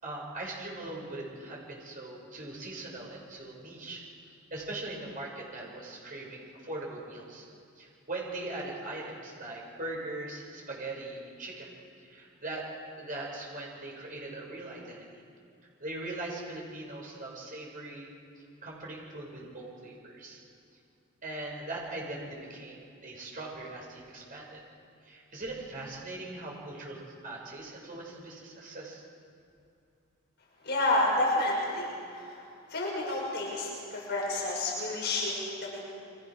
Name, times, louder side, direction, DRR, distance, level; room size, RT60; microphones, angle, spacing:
voice 1, 0.0-4.0 4.5-7.5 7.8-11.7 12.0-12.7 13.0-15.2 15.8-20.4 21.2-24.6 25.0-29.0, right 2 dB, 40° right, -2 dB, 6.8 m, -40 dB
voice 2, 30.6-32.4 32.7-35.8, left 1 dB, 55° left, -3 dB, 6.4 m, -30 dB
29.5 x 24.5 x 6.5 m, 2.6 s
head